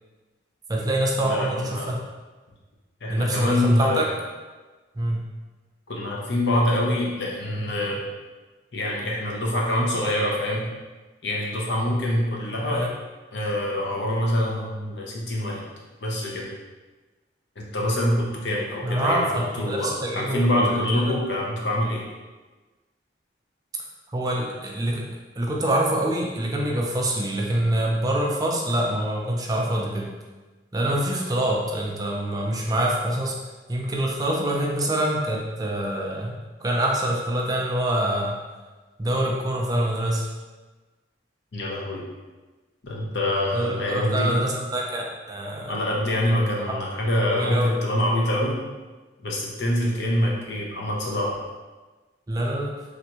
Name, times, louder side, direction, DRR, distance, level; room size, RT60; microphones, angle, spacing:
voice 1, 0.7-2.0 3.1-4.1 5.0-5.2 12.7-12.9 18.8-21.2 24.1-25.0 25.4-30.1 30.7-33.4 33.7-38.4 39.0-40.3 43.5-45.8 47.3-47.7 52.3-52.8, right 1 dB, 20° right, -2 dB, 0.4 m, -25 dB
voice 2, 1.2-2.0 3.0-4.0 5.9-8.0 8.7-10.6 11.2-12.8 13.3-15.6 16.0-16.5 17.6-19.3 19.5-19.9 20.1-22.0 41.5-42.0 42.8-44.3 45.7-48.6 49.2-51.3, left 1 dB, 70° left, -3 dB, 0.7 m, -25 dB
3.3 x 2.5 x 2.9 m, 1.3 s
head